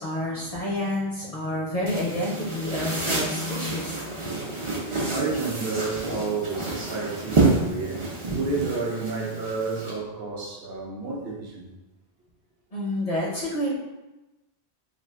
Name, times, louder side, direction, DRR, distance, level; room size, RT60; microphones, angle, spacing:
voice 1, 0.0-4.6 12.7-13.8, left 1 dB, 50° left, -4 dB, 0.5 m, -29 dB
sound 1, 1.9-9.9, right 3 dB, 40° right, 0.5 m, -28 dB
voice 2, 4.0-11.7, right 3 dB, 65° right, -2 dB, 0.8 m, -31 dB
2.4 x 2.4 x 3.3 m, 1.1 s
omnidirectional pair, 1.1 m